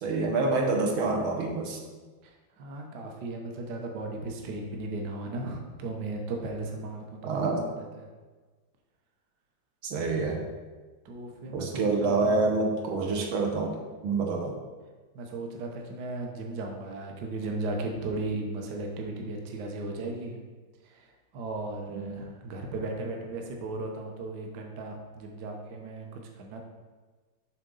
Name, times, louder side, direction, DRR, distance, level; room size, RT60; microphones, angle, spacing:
voice 1, 0.0-1.8 7.2-7.6 9.8-10.4 11.5-13.8 14.0-14.5 22.0-22.1, right 3 dB, 80° right, 1 dB, 1.7 m, -27 dB
voice 2, 2.2-8.1 11.0-12.5 15.1-20.4 20.8-26.6, right 2 dB, 60° right, 1 dB, 1.3 m, -36 dB
7.5 x 3.6 x 5.3 m, 1.3 s
omnidirectional pair, 2.3 m